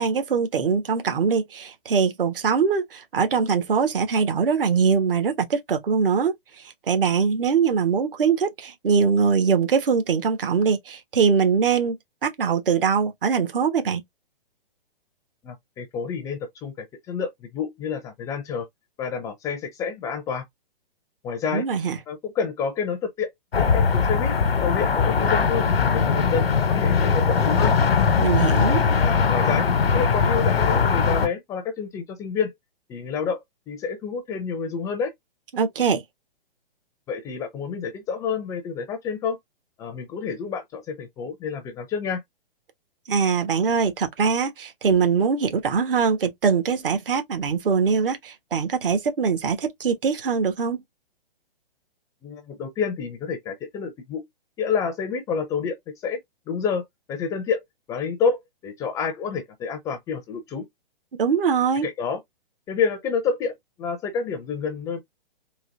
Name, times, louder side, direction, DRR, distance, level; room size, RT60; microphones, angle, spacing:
voice 1, 0.0-6.3 6.9-12.0 12.2-14.0 21.5-22.0 28.2-28.8 35.5-36.0 43.1-50.8 61.2-61.9, right 6 dB, 65° right, 1.3 m, -22 dB
voice 2, 15.4-18.7 19.0-20.4 21.2-21.7 22.1-23.3 23.6-24.4 24.6-25.7 25.9-27.7 29.0-29.7 29.9-32.5 32.9-33.4 33.7-35.1 37.1-39.4 39.8-42.2 52.2-54.2 54.6-55.8 56.0-56.2 56.5-56.8 57.1-57.6 57.9-60.7 61.8-62.2 62.7-63.5 63.8-65.0, left 6 dB, 10° left, 0.4 m, -28 dB
sound 1, 23.5-31.3, left 5 dB, 90° left, 0.9 m, -20 dB
4.0 x 2.8 x 2.5 m
hypercardioid pair, 130°, 29 cm